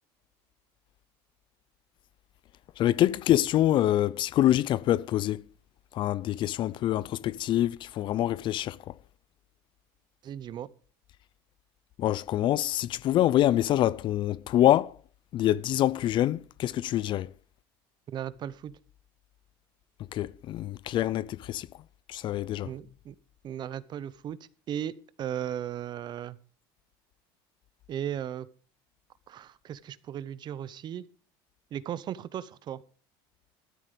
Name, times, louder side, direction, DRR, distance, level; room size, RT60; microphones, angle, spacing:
voice 1, 2.8-5.4 5.9-8.8 12.0-14.9 15.3-17.3 20.1-21.7 22.1-22.7, left 13 dB, 45° left, 0.5 m, -25 dB
voice 2, 10.2-10.7 18.1-18.7 22.6-23.2 23.4-24.4 24.7-26.4 27.9-28.5 29.3-31.0 31.7-32.8, right 10 dB, 40° right, 0.8 m, -36 dB
13.0 x 10.0 x 5.1 m
supercardioid pair, 120°, 11 cm